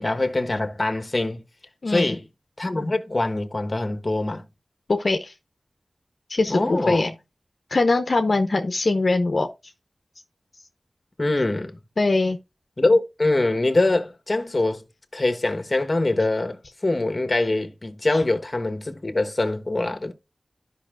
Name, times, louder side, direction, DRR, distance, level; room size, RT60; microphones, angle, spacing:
voice 1, 0.0-1.4 1.9-2.2 2.6-4.4 6.5-7.1 11.2-11.8 12.8-14.8 15.1-20.1, left 2 dB, 40° left, 1.2 m, -23 dB
voice 2, 1.8-2.2 4.9-5.3 6.3-7.1 7.7-9.5 12.0-12.4 18.1-18.2, left 3 dB, 65° left, 0.8 m, -22 dB
13.0 x 5.5 x 2.5 m
wide cardioid pair, 70°, 0 cm